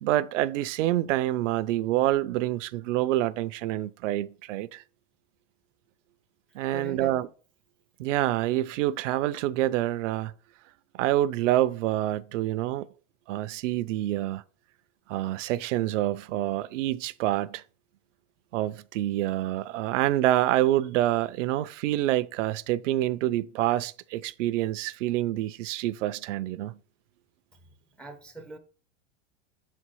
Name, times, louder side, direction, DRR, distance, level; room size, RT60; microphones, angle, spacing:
voice 1, 0.0-4.8 6.5-7.3 8.0-10.3 10.9-12.9 13.3-14.4 15.1-17.6 18.5-26.7, right 14 dB, 75° right, 0.5 m, -27 dB
voice 2, 6.7-7.3 28.0-28.6, right 1 dB, 5° left, 0.4 m, -42 dB
6.0 x 4.3 x 4.7 m
supercardioid pair, 140°, 38 cm